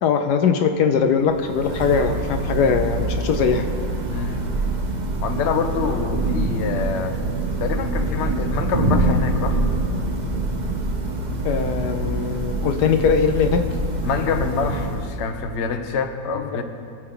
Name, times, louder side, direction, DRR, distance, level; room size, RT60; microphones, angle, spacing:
voice 1, 0.0-3.7 11.4-13.6 16.5-16.6, left 6 dB, 70° left, 6 dB, 1.1 m, -20 dB
Thunder / Rain, 1.1-15.5, right 2 dB, 45° right, 0.5 m, -25 dB
voice 2, 4.1-4.4 5.2-7.2 7.6-9.7 14.0-16.6, left 5 dB, 55° left, 6 dB, 0.8 m, -26 dB
23.0 x 7.9 x 3.8 m, 2.4 s
omnidirectional pair, 2.0 m